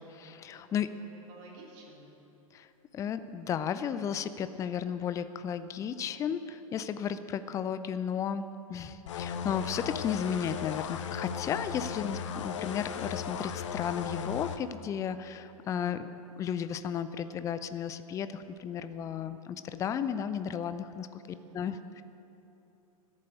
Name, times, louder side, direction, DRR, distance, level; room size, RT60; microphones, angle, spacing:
voice 1, 0.0-0.9 2.5-2.7 2.9-16.1 16.4-21.2 21.5-22.0, left 8 dB, 15° left, 12 dB, 0.5 m, -34 dB
voice 2, 0.5-2.2 15.7-16.2 21.2-21.9, right 1 dB, 40° right, -2 dB, 3.4 m, -54 dB
sound 1, 9.1-14.6, left 7 dB, 55° left, 0.8 m, -36 dB
14.0 x 7.5 x 9.8 m, 2.9 s
figure-of-eight pair, 100°, 19 cm